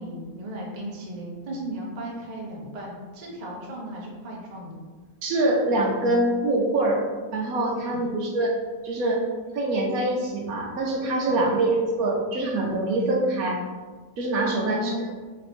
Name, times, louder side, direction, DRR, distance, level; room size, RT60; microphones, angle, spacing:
voice 1, 0.0-4.8 7.9-8.2 11.3-11.5 14.5-15.1, right 1 dB, 40° right, -3 dB, 0.6 m, -36 dB
voice 2, 5.2-7.0 7.3-8.5 8.8-9.2 9.5-13.6 14.2-14.9, right 2 dB, 70° right, 0 dB, 1.1 m, -24 dB
3.3 x 2.8 x 4.2 m, 1.4 s
omnidirectional pair, 1.7 m